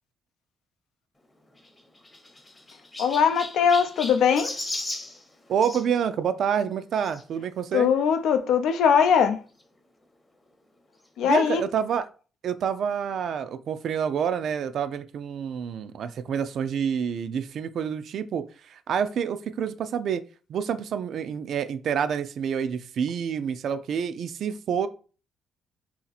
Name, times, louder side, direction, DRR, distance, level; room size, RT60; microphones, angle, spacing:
Chirp tweet, 1.5-5.9 7.0-7.2 7.9-8.0 8.2-8.3 9.6-9.7, left 1 dB, 15° left, 0.7 m, -36 dB
voice 1, 3.0-4.6 7.7-9.4 11.2-11.6, left 7 dB, 80° left, 0.4 m, -21 dB
voice 2, 5.5-7.9 11.2-12.1 12.4-20.2 20.5-24.9, right 7 dB, 65° right, 0.3 m, -28 dB
2.8 x 2.5 x 4.0 m
cardioid pair, 90°, 0 cm